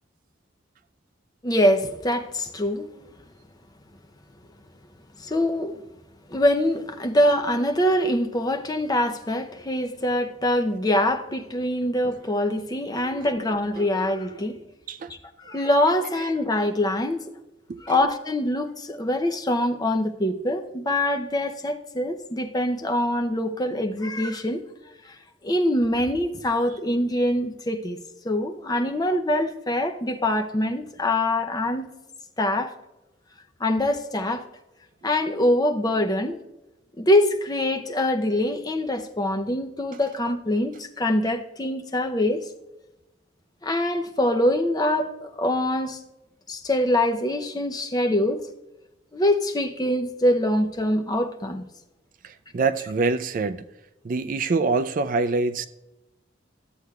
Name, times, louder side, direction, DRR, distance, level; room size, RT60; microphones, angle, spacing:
voice 1, 1.4-2.9 5.2-5.8 6.3-14.6 15.4-17.2 17.8-24.6 25.4-28.0 28.2-31.9 32.4-32.7 33.6-34.4 35.0-36.4 37.0-42.4 43.6-46.0 46.5-48.4 49.1-51.6, left 1 dB, 20° left, 0.6 m, -24 dB
voice 2, 52.2-53.6 54.0-55.7, right 3 dB, 45° right, 0.3 m, -26 dB
13.0 x 7.8 x 2.3 m
head